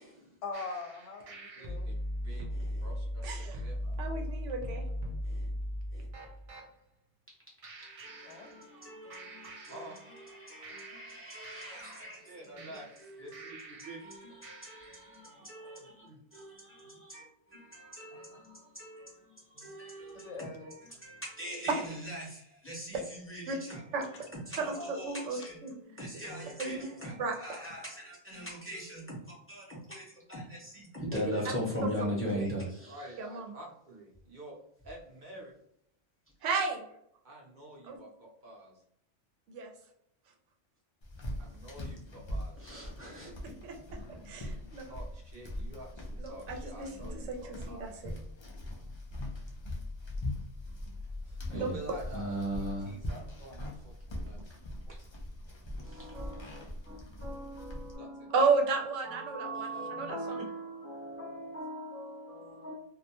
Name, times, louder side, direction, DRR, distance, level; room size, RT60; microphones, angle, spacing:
voice 1, 0.4-1.9 8.3-8.5 11.6-12.0 20.1-20.8 25.4-25.5 59.5-59.9, left 3 dB, 80° left, 4 dB, 0.9 m, -43 dB
sound 1, 0.5-6.7 7.6-8.9 9.1-10.3 10.6-14.1 14.4-15.1, equal, 65° right, 0.3 m, -40 dB
voice 2, 1.5-1.9 2.2-2.5 2.8-4.0 9.7-9.9 12.3-12.9 13.2-14.0 15.2-16.2 16.9-17.0 19.5-19.7 24.6-25.0 26.8-27.1 32.9-34.6 34.8-35.5 37.2-38.8 41.4-42.7 44.5-48.0 51.2-52.2 52.6-53.9 54.2-54.4 54.9-55.1 57.9-58.3 59.7-59.8 60.3-60.4, right 1 dB, 45° right, -3 dB, 0.8 m, -49 dB
voice 3, 2.3-2.7 5.2-5.5 5.9-6.1 7.8-12.3 12.7-13.5 13.8-16.1 16.3-17.2 17.5-19.3 19.6-23.8 24.5-33.0 42.6-43.5 51.5-51.7 52.1-53.0 55.8-58.3 59.0-62.7, equal, 15° left, -5 dB, 0.6 m, -41 dB
voice 4, 3.2-3.5 4.0-4.8 23.5-23.6 23.9-24.0 24.6-24.7 25.0-25.7 26.6-26.8 27.2-27.4 31.8-32.4 33.2-33.4 36.4-36.9 37.9-38.0 39.5-39.7 43.6-43.7 44.3-44.8 46.2-47.4 47.7-47.9 51.5-51.7 58.3-60.4, right 4 dB, 90° right, 3 dB, 1.0 m, -33 dB
sound 2, 41.0-58.0, left 1 dB, 50° left, 0.3 m, -41 dB
2.5 x 2.1 x 2.8 m, 0.74 s
omnidirectional pair, 1.2 m